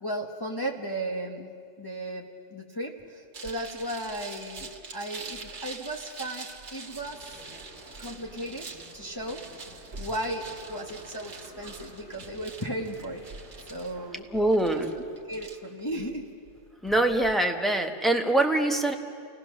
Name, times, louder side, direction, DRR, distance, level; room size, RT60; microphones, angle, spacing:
voice 1, 0.0-7.3 8.0-8.7 8.9-9.4 10.0-13.2 13.7-14.3 14.7-14.8 15.3-16.3, right 1 dB, 20° left, 0 dB, 1.3 m, -35 dB
sound 1, 3.3-17.3, right 4 dB, 70° right, 1.6 m, -45 dB
sound 2, 6.9-14.1, equal, 85° left, 7.2 m, -50 dB
voice 2, 14.3-14.9 16.8-18.9, right 1 dB, ahead, 3 dB, 1.2 m, -24 dB
29.0 x 18.0 x 6.5 m, 2.2 s
omnidirectional pair, 1.2 m